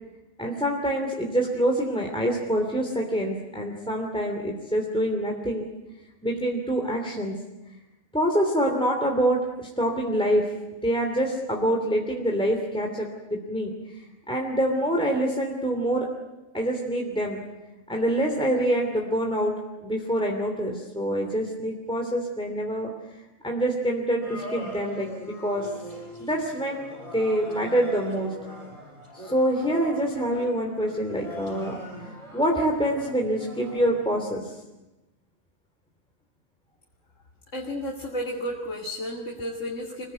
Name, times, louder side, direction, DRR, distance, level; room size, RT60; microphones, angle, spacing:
voice 1, 0.4-5.6 6.2-7.4 8.1-13.7 14.3-16.1 16.5-17.4 17.9-19.5 19.8-22.9 23.4-25.7 26.2-26.8 27.1-28.3 29.2-31.8 32.3-34.6, right 1 dB, 5° left, 0 dB, 3.0 m, -26 dB
sound 1, 24.2-34.2, equal, 25° right, 6.8 m, -41 dB
voice 2, 37.5-40.1, equal, 65° left, -1 dB, 3.0 m, -32 dB
26.0 x 20.0 x 9.5 m, 1.0 s
omnidirectional pair, 1.4 m